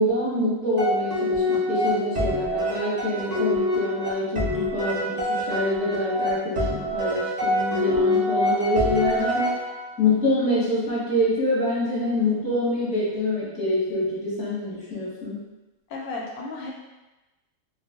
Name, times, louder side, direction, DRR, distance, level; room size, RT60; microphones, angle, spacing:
voice 1, 0.0-9.5 10.0-15.4, left 1 dB, 5° left, -9 dB, 0.7 m, -25 dB
sound 1, 0.8-10.1, left 1 dB, 70° right, 0.4 m, -26 dB
voice 2, 15.9-16.7, left 3 dB, 75° left, -2 dB, 1.0 m, -33 dB
2.4 x 2.1 x 3.4 m, 1.1 s
omnidirectional pair, 1.6 m